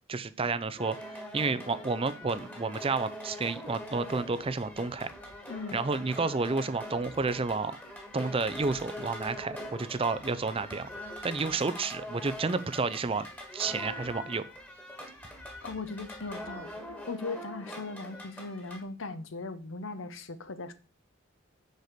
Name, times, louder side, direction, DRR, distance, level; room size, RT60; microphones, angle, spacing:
voice 1, 0.1-1.0 1.3-5.1 5.7-7.8 8.1-10.9 11.2-13.3 13.5-14.4, right 4 dB, 30° right, 0.5 m, -30 dB
sound 1, 0.8-18.8, left 1 dB, 10° left, 1.6 m, -43 dB
voice 2, 5.5-5.8 15.6-20.7, left 3 dB, 70° left, 0.9 m, -39 dB
6.7 x 4.8 x 6.6 m
head